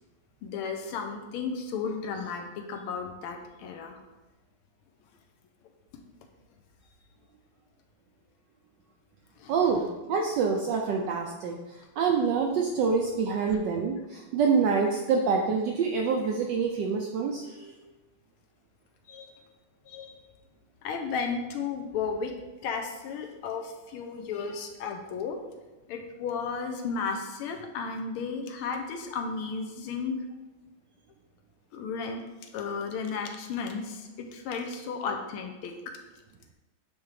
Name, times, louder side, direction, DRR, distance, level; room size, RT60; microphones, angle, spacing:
voice 1, 0.4-4.0 9.4-9.5 13.4-13.6 19.1-19.3 19.9-20.1 20.8-22.3 22.6-25.4 25.9-30.2 31.7-32.2 32.5-35.9, left 5 dB, 80° left, 4 dB, 1.6 m, -34 dB
voice 2, 9.5-11.6 12.0-17.6, right 5 dB, 80° right, 1 dB, 1.0 m, -26 dB
9.2 x 3.5 x 3.2 m, 1.1 s
omnidirectional pair, 2.4 m